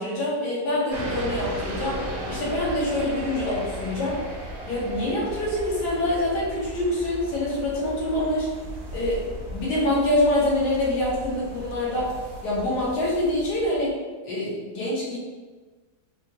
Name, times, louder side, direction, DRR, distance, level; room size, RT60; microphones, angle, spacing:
voice 1, 0.0-2.0 2.3-4.2 4.7-8.5 8.9-9.3 9.5-12.1 12.4-14.0 14.2-15.2, left 1 dB, 80° left, -6 dB, 1.7 m, -25 dB
sound 1, 0.9-13.9, equal, 50° right, 0.7 m, -36 dB
4.0 x 2.8 x 2.8 m, 1.3 s
omnidirectional pair, 1.7 m